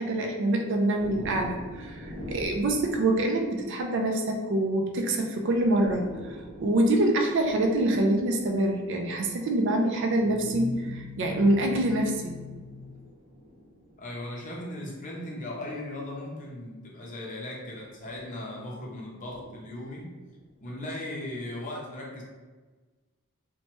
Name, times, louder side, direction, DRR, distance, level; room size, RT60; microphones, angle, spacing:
voice 1, 0.0-13.0, right 1 dB, 55° right, 2 dB, 0.4 m, -26 dB
sound 1, 1.0-3.7 5.0-5.1 5.4-9.0 9.9-10.1 11.3-14.2 15.7-15.9 17.6-18.4 19.2-20.6, equal, 40° right, 1.1 m, -44 dB
voice 2, 14.0-20.1 20.6-22.2, left 1 dB, 35° left, -3 dB, 0.6 m, -37 dB
2.9 x 2.1 x 3.0 m, 1.3 s
head